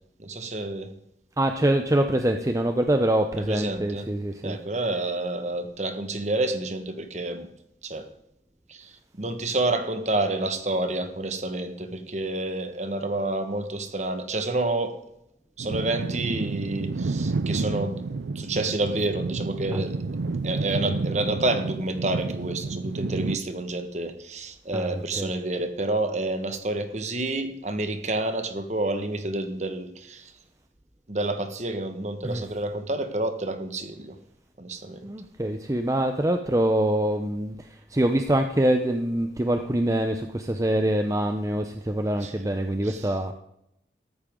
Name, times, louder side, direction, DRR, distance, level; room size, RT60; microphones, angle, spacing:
voice 1, 0.2-0.9 3.4-4.1 4.4-7.5 7.8-8.1 8.7-15.0 15.6-18.0 18.3-20.0 20.4-30.3 31.1-34.2 34.6-35.1 42.2-42.3 42.8-43.1, right 2 dB, 40° right, 8 dB, 1.5 m, -29 dB
voice 2, 1.4-4.6 19.7-19.8 24.7-25.3 32.2-32.4 35.0-43.3, right 1 dB, 20° right, 6 dB, 0.6 m, -25 dB
sound 1, 15.6-23.4, right 3 dB, 85° right, 0.5 m, -30 dB
14.0 x 13.5 x 3.8 m, 0.80 s
head